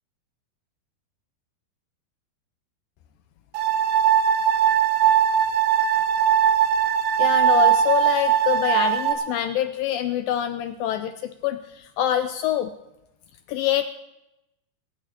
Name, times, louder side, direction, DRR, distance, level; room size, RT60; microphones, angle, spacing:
sound 1, 3.5-9.1, right 9 dB, 70° right, 2.8 m, -20 dB
voice 1, 7.2-12.7 13.5-13.8, left 11 dB, 80° left, 9 dB, 2.1 m, -25 dB
26.5 x 15.0 x 2.9 m, 0.92 s
omnidirectional pair, 4.5 m